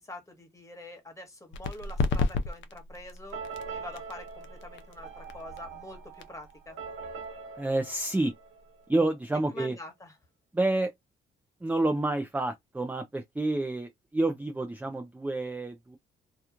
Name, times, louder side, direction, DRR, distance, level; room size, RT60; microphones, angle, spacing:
voice 1, 0.0-3.4 3.7-6.8 9.5-10.2, left 1 dB, 15° left, 1.3 m, -45 dB
sound 1, 1.5-8.9, left 4 dB, 70° left, 0.6 m, -35 dB
sound 2, 3.3-9.1, right 5 dB, 85° right, 1.1 m, -43 dB
voice 2, 7.6-8.3 8.9-9.8 10.5-10.9 11.6-16.0, right 2 dB, 10° right, 0.5 m, -29 dB
3.0 x 2.3 x 2.4 m
cardioid pair, 90°, 20 cm